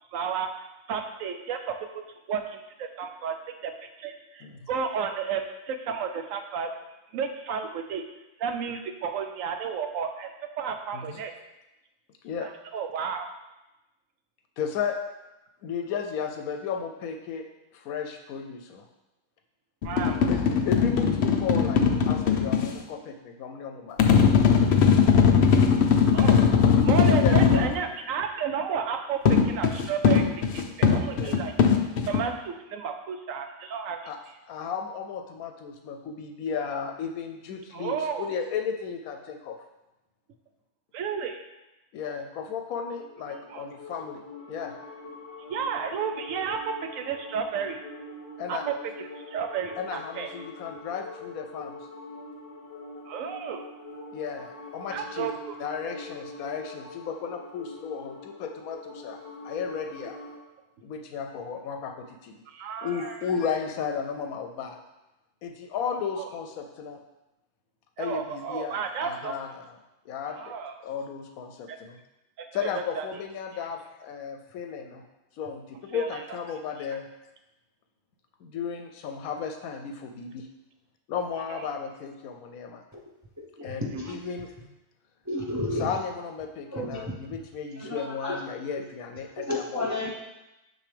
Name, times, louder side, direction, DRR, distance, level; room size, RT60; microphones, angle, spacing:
voice 1, 0.1-0.5 0.9-1.8 2.3-3.4 3.6-3.7 4.0-6.7 7.1-8.0 8.4-11.3 12.4-13.3 19.8-20.2 26.1-26.4 26.8-31.5 32.1-34.0 37.7-38.3 40.9-41.4 43.5-43.6 45.5-47.8 48.5-50.3 53.1-53.6 54.9-55.3 62.5-63.2 66.2-66.3 68.0-69.3 70.3-70.7 71.7-71.8 72.4-72.5 73.0-73.1 75.9-76.2 81.5-81.7 83.6-83.7, right 6 dB, 70° right, 6 dB, 1.0 m, -32 dB
voice 2, 14.6-15.0 15.6-17.4 17.7-18.8 20.3-24.0 27.2-27.6 31.2-31.3 34.1-34.2 34.4-39.6 41.9-44.2 44.5-44.7 48.4-48.7 49.8-51.8 54.1-55.3 55.6-60.2 60.8-62.3 62.8-64.8 65.4-67.0 68.0-69.8 70.1-70.5 70.8-72.0 72.5-75.0 75.4-77.1 78.4-80.5 81.1-82.8 83.6-84.5 85.7-89.9, left 6 dB, 80° left, 4 dB, 1.0 m, -34 dB
sound 1, 19.8-22.7 24.0-27.7 29.3-32.2, left 6 dB, 60° left, 0.8 m, -20 dB
sound 2, 42.8-60.4, left 2 dB, 40° left, 1.4 m, -44 dB
voice 3, 83.4-84.2 85.3-85.9 86.7-87.1 87.8-88.4 88.7-88.8 89.4-90.2, left 1 dB, 25° right, -3 dB, 0.4 m, -32 dB
6.3 x 5.8 x 3.4 m, 0.98 s
omnidirectional pair, 1.5 m